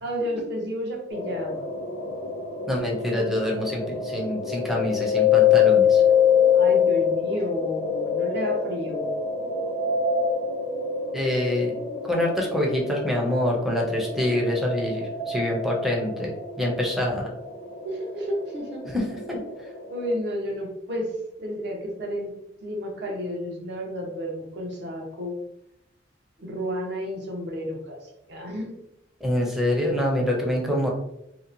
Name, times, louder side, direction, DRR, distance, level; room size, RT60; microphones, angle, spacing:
voice 1, 0.0-1.7 6.5-9.1 17.8-18.9 19.9-22.3 22.6-25.4 26.4-28.8, equal, 65° right, 0 dB, 0.7 m, -31 dB
sound 1, 1.1-20.2, left 7 dB, 55° left, 0.5 m, -25 dB
voice 2, 2.7-6.0 11.1-11.7 12.0-16.3 16.6-17.3 18.9-19.4 29.2-30.9, left 1 dB, ahead, -2 dB, 0.5 m, -25 dB
2.8 x 2.1 x 2.6 m, 0.81 s
head